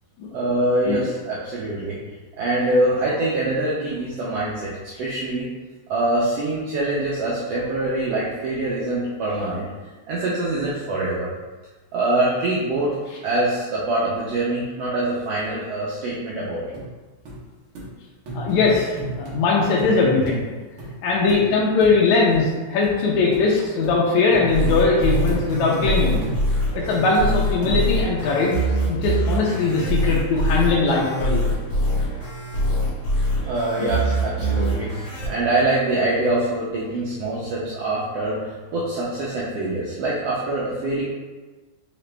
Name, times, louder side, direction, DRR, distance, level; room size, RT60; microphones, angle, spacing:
voice 1, 0.3-2.0 2.4-4.7 5.0-5.5 5.9-9.7 10.1-11.3 11.9-13.0 13.2-16.8 33.4-41.0, right 2 dB, 75° right, -6 dB, 1.4 m, -24 dB
sound 1, 16.7-16.9 17.3-17.4 17.8-17.9 18.3-19.4 19.8-20.0 20.3-20.4 20.8-20.9 21.3-21.4 21.8-22.0 22.3-22.4 22.8-22.9 23.3-23.5 23.8-24.0 24.3-25.9 26.2-26.4 26.9-27.3 27.6-28.1 28.6-28.7, right 1 dB, 60° right, 1.6 m, -33 dB
voice 2, 18.3-20.4 21.0-26.2 26.7-28.5 28.9-31.4 33.7-33.9, left 3 dB, 75° left, -4 dB, 2.0 m, -20 dB
sound 2, 24.5-35.3, equal, 50° left, 1.8 m, -23 dB
5.0 x 2.8 x 3.3 m, 1.3 s
omnidirectional pair, 3.4 m